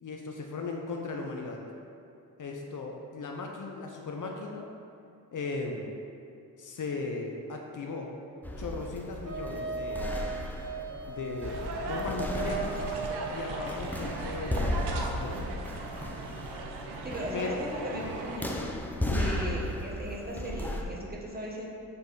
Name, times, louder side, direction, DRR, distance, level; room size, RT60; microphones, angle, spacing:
voice 1, 0.0-1.6 2.4-4.7 5.3-5.9 6.6-8.2 8.6-10.2 11.1-12.9 13.3-15.5 17.3-17.6 18.0-18.1 19.0-19.2, left 3 dB, 50° left, 1 dB, 0.7 m, -37 dB
sound 1, 8.4-20.8, left 1 dB, 5° left, 0.7 m, -35 dB
Wind instrument woodwind instrument, 9.2-13.7, right 4 dB, 40° right, 1.4 m, -37 dB
sound 2, 11.4-18.4, right 3 dB, 70° right, 0.7 m, -39 dB
voice 2, 17.0-18.6 19.1-21.7, equal, 20° right, -3 dB, 1.3 m, -37 dB
6.9 x 3.4 x 4.0 m, 2.6 s
supercardioid pair, 55°, 41 cm